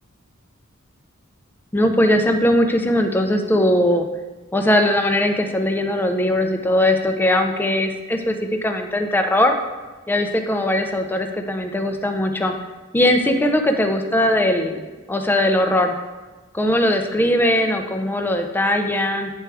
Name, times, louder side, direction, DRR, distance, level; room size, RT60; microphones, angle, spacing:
voice 1, 1.7-4.1 4.5-8.4 8.6-9.6 10.1-12.5 12.9-14.8 15.1-15.9 16.5-19.3, left 1 dB, 10° left, 5 dB, 0.5 m, -19 dB
8.7 x 4.7 x 3.4 m, 1.2 s
head